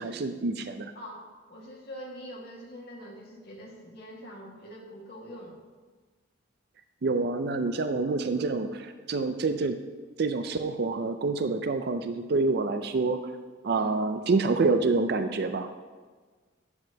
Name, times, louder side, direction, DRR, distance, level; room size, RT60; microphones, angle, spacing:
voice 1, 0.0-0.9 7.0-9.8 10.2-13.2 13.6-15.7, right 3 dB, 55° right, 8 dB, 0.4 m, -27 dB
voice 2, 1.0-5.6 13.7-13.9, equal, 55° left, -2 dB, 1.8 m, -44 dB
10.5 x 7.3 x 2.8 m, 1.4 s
head